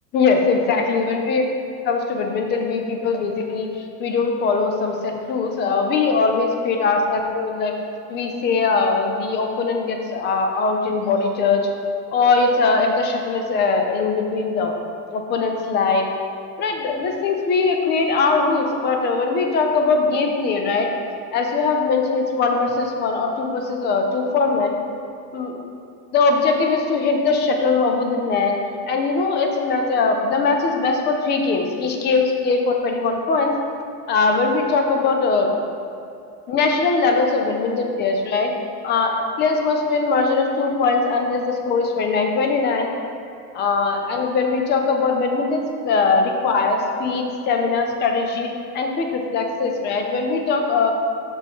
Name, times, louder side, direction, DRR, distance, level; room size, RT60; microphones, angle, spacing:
voice 1, 0.1-1.4 1.8-3.7 4.0-7.7 8.1-11.7 12.1-14.8 15.1-16.1 16.6-20.9 21.3-24.7 25.3-25.5 26.1-28.6 28.9-33.5 34.1-35.5 36.5-38.5 38.8-42.9 43.5-48.5 48.7-50.9, left 4 dB, 20° left, 3 dB, 0.5 m, -21 dB
6.5 x 6.2 x 3.6 m, 2.7 s
supercardioid pair, 140°, 49 cm